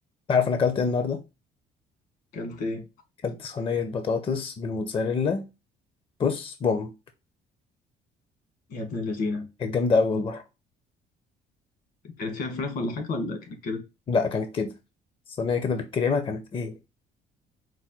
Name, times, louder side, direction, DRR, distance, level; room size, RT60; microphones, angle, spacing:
voice 1, 0.3-1.2 3.2-5.4 6.2-6.9 9.6-10.4 14.1-14.7 15.3-16.7, left 5 dB, 30° left, 0.5 m, -26 dB
voice 2, 2.3-2.9 8.7-9.5 12.0-13.8, left 3 dB, 70° left, 1.6 m, -31 dB
4.7 x 2.2 x 4.3 m
cardioid pair, 110°, 17 cm